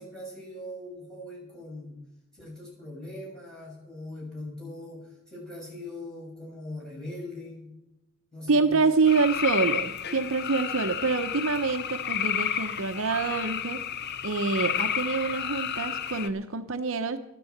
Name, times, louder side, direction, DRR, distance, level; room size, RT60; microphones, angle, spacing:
voice 1, 0.0-2.0 2.3-7.7 8.3-8.8, left 1 dB, 5° left, -6 dB, 6.7 m, -41 dB
voice 2, 8.5-13.8 14.2-17.2, right 4 dB, 65° right, 8 dB, 0.8 m, -26 dB
sound 1, 9.1-16.3, left 8 dB, 50° left, 0.7 m, -31 dB
13.0 x 10.0 x 8.0 m, 0.89 s
head